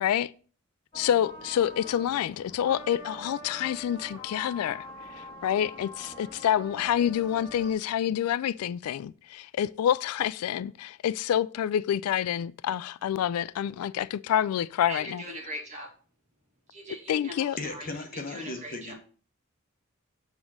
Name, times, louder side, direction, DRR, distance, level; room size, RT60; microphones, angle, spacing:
voice 1, 0.0-0.3 0.9-4.9 5.2-15.2 17.1-17.6, left 10 dB, 90° left, 0.3 m, -27 dB
sound 1, 0.9-7.7, left 1 dB, 25° left, 1.8 m, -44 dB
voice 2, 14.9-15.9 16.7-17.9 18.3-18.9, right 1 dB, 30° right, 2.0 m, -40 dB
voice 3, 17.6-18.9, left 3 dB, 40° left, 1.1 m, -36 dB
7.1 x 3.6 x 6.3 m
head